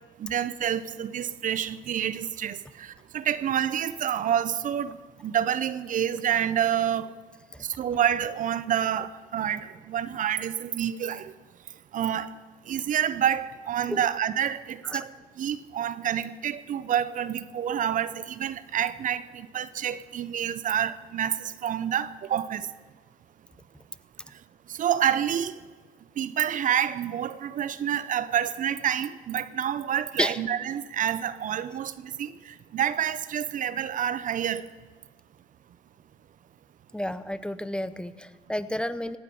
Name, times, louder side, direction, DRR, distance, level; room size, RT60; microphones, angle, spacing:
voice 1, 0.2-5.0 5.2-7.1 7.6-11.3 11.9-12.3 12.7-15.1 15.4-22.7 24.7-25.6 26.2-34.7, right 9 dB, 65° right, 0.7 m, -28 dB
voice 2, 36.9-39.2, left 1 dB, 5° left, 0.8 m, -31 dB
17.5 x 9.7 x 8.5 m
cardioid pair, 75°, 15 cm